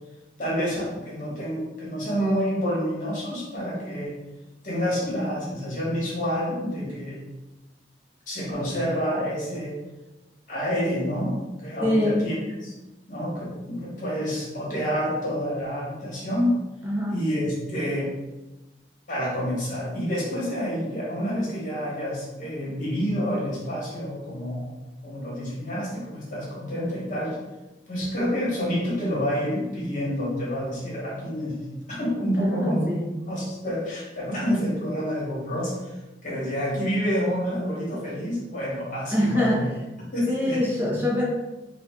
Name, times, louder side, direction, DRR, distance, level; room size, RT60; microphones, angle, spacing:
voice 1, 0.4-4.1 4.6-7.2 8.3-9.8 10.5-12.4 12.6-12.7 13.1-16.6 17.1-18.1 19.1-24.7 25.0-27.4 27.9-32.9 33.3-36.0 36.2-39.7 40.1-40.6, equal, 45° left, -5 dB, 1.3 m, -28 dB
voice 2, 11.8-12.3 16.8-17.2 32.3-33.1 39.1-39.7 40.3-41.2, left 1 dB, 10° right, -6 dB, 0.8 m, -24 dB
4.0 x 2.5 x 3.7 m, 1.0 s
head